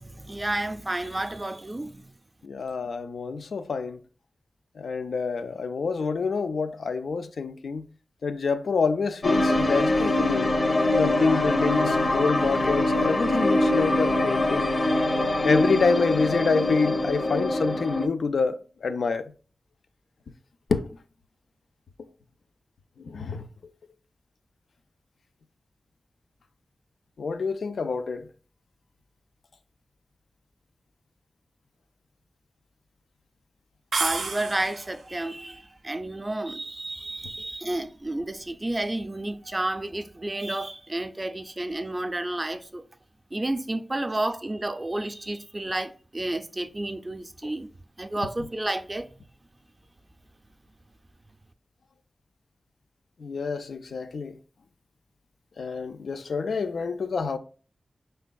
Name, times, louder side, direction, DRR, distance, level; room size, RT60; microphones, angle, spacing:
voice 1, 0.0-2.1 34.0-42.8 43.3-47.7 48.0-49.1, right 1 dB, 25° right, 0.4 m, -31 dB
voice 2, 2.4-4.0 4.8-7.8 8.2-10.5 10.9-14.7 15.4-19.3 20.7-20.9 23.0-23.5 27.2-28.3 53.2-54.4 55.6-57.4, left 4 dB, 90° left, 0.3 m, -27 dB
sound 1, 9.2-18.1, left 2 dB, 50° left, 0.7 m, -23 dB
sound 2, 33.9-35.0, right 4 dB, 90° right, 0.5 m, -29 dB
5.1 x 3.2 x 2.2 m
wide cardioid pair, 65°, 0 cm